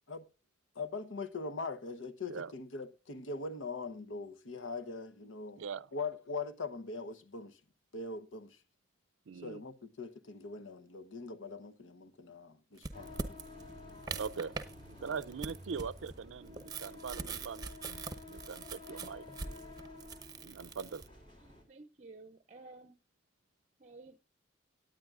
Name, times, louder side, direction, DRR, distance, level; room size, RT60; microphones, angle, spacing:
voice 1, 0.7-5.6 5.9-7.6 7.9-8.6 9.4-13.2 15.1-15.2, left 3 dB, 85° left, 0.9 m, -41 dB
voice 2, 5.6-5.9 9.3-9.6 14.2-14.5 15.0-19.3 20.4-21.0, right 6 dB, 85° right, 0.5 m, -41 dB
sound 1, 12.8-14.7 15.1-21.1, right 4 dB, 20° right, 0.9 m, -42 dB
sound 2, 12.9-21.6, left 2 dB, 25° left, 3.0 m, -51 dB
voice 3, 21.4-23.0 23.8-24.2, right 3 dB, 40° right, 0.6 m, -53 dB
18.0 x 9.4 x 2.4 m
head